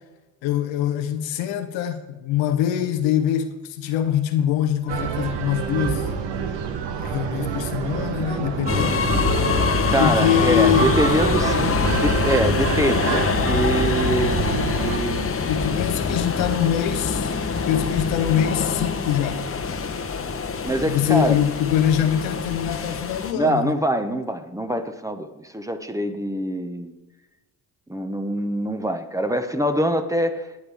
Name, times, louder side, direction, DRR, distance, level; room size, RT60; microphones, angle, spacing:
voice 1, 0.4-6.1 7.0-9.0 10.0-10.9 15.5-17.4 17.7-19.4 20.9-23.7, left 10 dB, 70° left, 7 dB, 1.2 m, -23 dB
sound 1, 4.9-15.0, right 7 dB, 60° right, 1.3 m, -27 dB
sound 2, 8.7-23.3, left 5 dB, 30° left, 1.2 m, -24 dB
voice 2, 9.9-15.3 20.6-21.4 23.3-26.9 27.9-30.5, right 1 dB, 5° right, 7 dB, 1.1 m, -24 dB
14.5 x 9.6 x 3.6 m, 1.1 s
hypercardioid pair, 50°, 48 cm